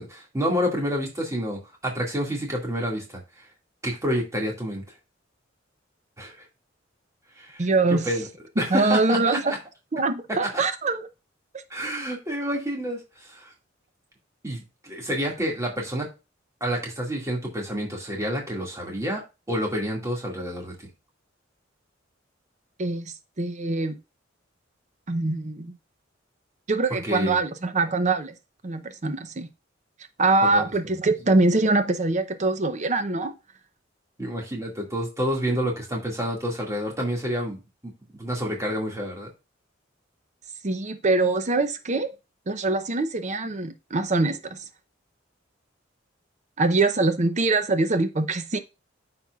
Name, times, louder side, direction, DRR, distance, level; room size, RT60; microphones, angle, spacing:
voice 1, 0.0-3.5 3.8-4.8 6.2-6.4 7.4-8.3 8.6-9.6 10.4-10.6 11.7-13.5 14.4-16.1 16.6-19.2 19.5-20.7 27.0-27.4 30.4-30.7 34.2-37.6 38.2-39.3, equal, 15° right, 2.1 m, -29 dB
voice 2, 7.6-8.1 8.7-9.5 9.9-11.1 22.8-24.0 25.1-25.8 26.7-28.3 28.6-29.5 30.2-33.3 40.6-42.1 42.5-44.6 46.6-48.6, right 3 dB, 40° right, 0.7 m, -23 dB
12.5 x 4.3 x 2.4 m
head